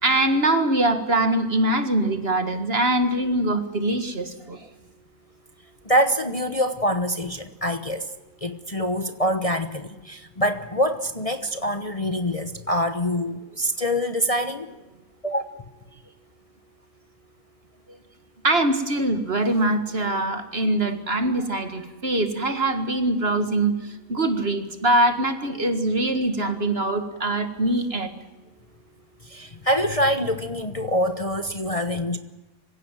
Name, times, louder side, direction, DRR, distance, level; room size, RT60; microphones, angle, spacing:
voice 1, 0.0-4.6 18.4-23.7 24.1-28.1, right 1 dB, 45° right, 8 dB, 2.1 m, -23 dB
voice 2, 5.8-8.1 8.4-14.7 15.2-15.4 29.2-32.2, equal, 25° left, 8 dB, 1.1 m, -25 dB
25.5 x 16.5 x 9.2 m, 1.1 s
omnidirectional pair, 1.5 m